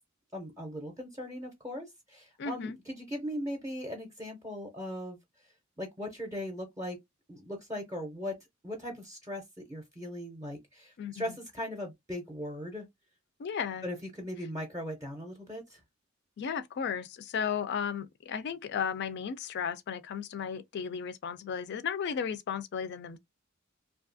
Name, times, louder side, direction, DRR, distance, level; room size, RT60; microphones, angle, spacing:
voice 1, 0.3-5.2 5.8-7.0 7.3-8.4 8.6-9.4 9.7-12.9 13.8-15.8, equal, 15° right, 0.6 m, -39 dB
voice 2, 2.4-2.8 11.0-11.4 13.4-13.9 16.4-23.2, left 7 dB, 55° left, 0.3 m, -34 dB
2.7 x 2.3 x 2.6 m
head